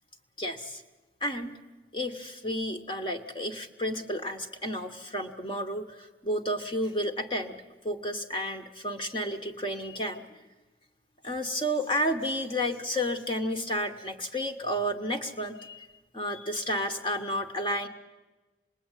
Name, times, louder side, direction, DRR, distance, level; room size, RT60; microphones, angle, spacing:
voice 1, 0.4-0.8 1.2-1.6 1.9-7.5 7.8-10.2 11.2-15.9 16.1-17.9, equal, 25° left, 5 dB, 1.3 m, -31 dB
26.0 x 21.0 x 9.1 m, 1.2 s
head